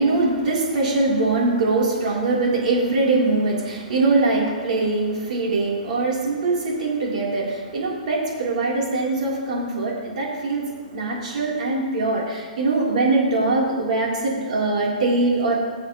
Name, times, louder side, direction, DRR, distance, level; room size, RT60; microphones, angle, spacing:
voice 1, 0.0-15.5, right 3 dB, 60° right, -4 dB, 3.4 m, -22 dB
20.0 x 7.2 x 3.1 m, 1.5 s
hypercardioid pair, 160°, 5 cm